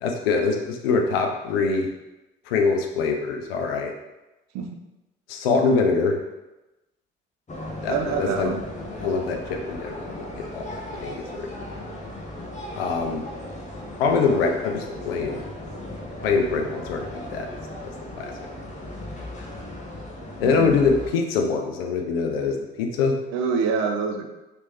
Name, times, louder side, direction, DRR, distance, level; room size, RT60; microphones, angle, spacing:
voice 1, 0.0-1.9 2.5-3.9 5.3-6.2 7.8-8.5 9.0-11.5 11.8-11.9 12.8-13.2 14.0-15.4 16.2-17.5 18.1-18.3 20.4-23.2, left 4 dB, 90° left, 3 dB, 0.5 m, -24 dB
sound 1, 7.5-21.1, left 1 dB, 25° left, 0.8 m, -37 dB
voice 2, 7.9-8.6 20.4-20.8 23.3-24.3, right 5 dB, 65° right, 4 dB, 0.6 m, -26 dB
3.2 x 3.0 x 2.9 m, 1.0 s
hypercardioid pair, 50°, 29 cm